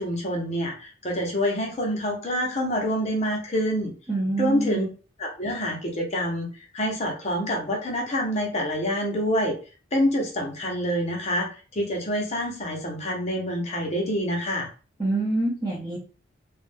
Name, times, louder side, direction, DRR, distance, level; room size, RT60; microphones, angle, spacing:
voice 1, 0.0-3.9 4.4-4.8 5.2-6.5 6.7-9.6 9.9-14.7, equal, 35° left, 0 dB, 0.6 m, -26 dB
voice 2, 4.1-4.9 15.0-16.0, right 2 dB, 20° right, -6 dB, 0.7 m, -26 dB
2.3 x 2.1 x 3.3 m, 0.36 s
head